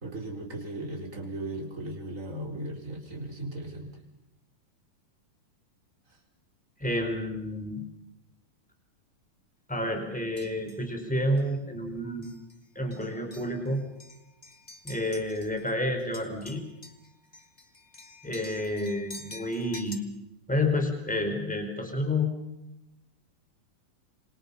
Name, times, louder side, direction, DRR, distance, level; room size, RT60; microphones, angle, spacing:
voice 1, 0.0-4.0, right 1 dB, 20° right, 0 dB, 4.5 m, -37 dB
voice 2, 6.8-7.9 9.7-12.3 12.7-13.8 14.8-16.6 18.2-20.1 20.5-22.3, left 1 dB, ahead, 4 dB, 4.5 m, -29 dB
sound 1, 10.4-10.9 11.4-11.5 12.2-12.6 12.9-15.7 16.0-20.0, left 2 dB, 20° left, 1.1 m, -48 dB
27.5 x 27.0 x 5.7 m, 0.94 s
omnidirectional pair, 4.1 m